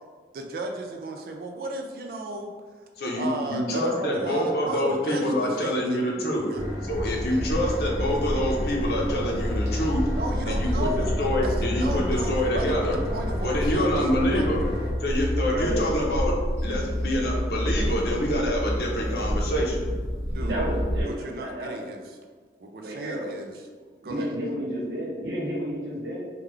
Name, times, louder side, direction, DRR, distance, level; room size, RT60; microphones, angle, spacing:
voice 1, 0.3-2.5 3.1-6.7 10.2-12.8 13.1-14.5 20.3-20.6 21.0-22.0 22.6-23.5 24.0-24.4, right 1 dB, 55° right, 3 dB, 0.3 m, -34 dB
voice 2, 3.0-6.5 6.9-10.0 10.5-13.0 13.4-14.6 15.0-16.3 16.6-19.9, equal, 60° left, -2 dB, 0.7 m, -26 dB
sound 1, 6.5-14.9, equal, 20° right, 0.7 m, -35 dB
sound 2, 6.9-21.0, equal, 35° right, 1.0 m, -29 dB
voice 3, 15.5-15.9 16.2-16.3 20.4-21.7 22.8-23.3 24.0-26.2, equal, 80° right, -4 dB, 0.9 m, -31 dB
3.6 x 2.3 x 3.2 m, 1.5 s
head